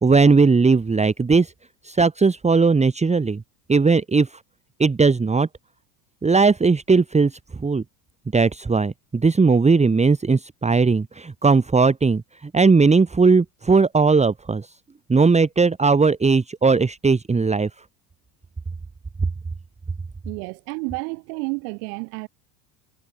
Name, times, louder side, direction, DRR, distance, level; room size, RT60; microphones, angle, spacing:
voice 1, 0.0-1.5 1.8-3.4 3.7-4.4 4.8-5.5 6.2-7.8 8.3-14.7 15.1-17.7, right 4 dB, 15° right, 1.8 m, -18 dB
voice 2, 20.2-22.3, right 35 dB, 70° right, 2.4 m, -30 dB
supercardioid pair, 110°, 50 cm